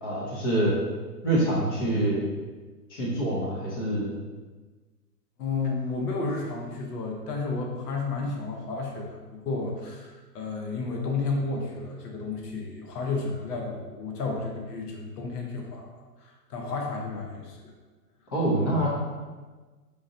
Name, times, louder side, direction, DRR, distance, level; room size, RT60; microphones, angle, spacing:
voice 1, 0.0-0.8 1.2-2.2 2.9-4.1 18.3-18.9, right 1 dB, 15° left, -5 dB, 0.4 m, -25 dB
voice 2, 5.4-17.7, left 3 dB, 70° left, 0 dB, 1.0 m, -32 dB
4.9 x 2.6 x 2.5 m, 1.3 s
hypercardioid pair, 130°, 49 cm